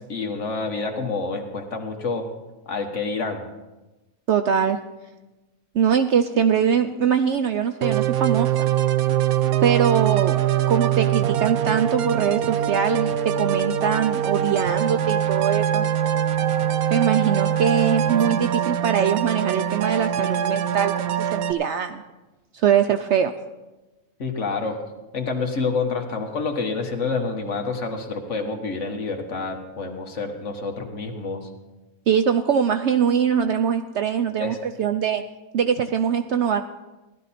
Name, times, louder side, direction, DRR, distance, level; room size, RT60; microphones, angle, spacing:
voice 1, 0.1-2.3 2.7-3.4 24.2-24.8 25.1-31.5 34.4-34.6, left 4 dB, 55° left, 4 dB, 1.6 m, -28 dB
voice 2, 4.3-4.8 5.7-8.7 9.6-10.4 10.7-15.9 16.9-22.0 22.5-23.3 32.1-35.2 35.5-36.6, right 8 dB, 65° right, 8 dB, 0.7 m, -22 dB
sound 1, 7.8-21.5, right 10 dB, 80° right, 1.2 m, -23 dB
16.0 x 12.0 x 4.2 m, 1.1 s
omnidirectional pair, 1.5 m